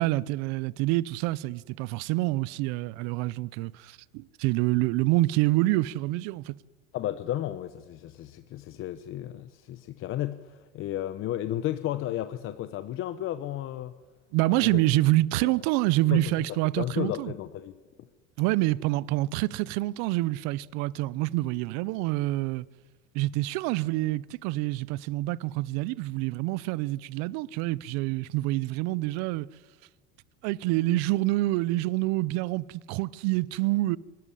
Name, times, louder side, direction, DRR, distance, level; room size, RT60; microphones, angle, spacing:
voice 1, 0.0-6.6 14.3-17.3 18.4-22.6 23.1-29.5 30.4-34.0, right 18 dB, 65° right, 0.7 m, -27 dB
voice 2, 6.9-13.9 14.5-14.8 15.4-15.6 16.1-16.3 16.8-17.8, left 13 dB, 45° left, 0.9 m, -33 dB
24.0 x 13.5 x 10.0 m
supercardioid pair, 125°, 29 cm